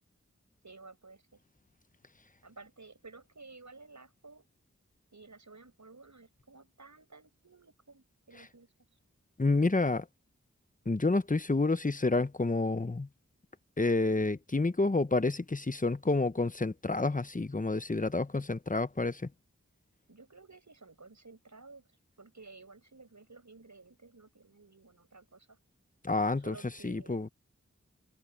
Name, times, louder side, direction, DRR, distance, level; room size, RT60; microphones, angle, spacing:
voice 1, 0.6-1.4 2.4-4.5 5.1-8.7 20.1-21.9 22.2-25.6 26.4-27.3, right 3 dB, 75° right, 6.9 m, -54 dB
voice 2, 9.4-10.0 10.9-13.1 13.8-19.3 26.0-26.5 26.8-27.3, left 3 dB, 30° left, 0.9 m, -29 dB
wide cardioid pair, 40°, 29 cm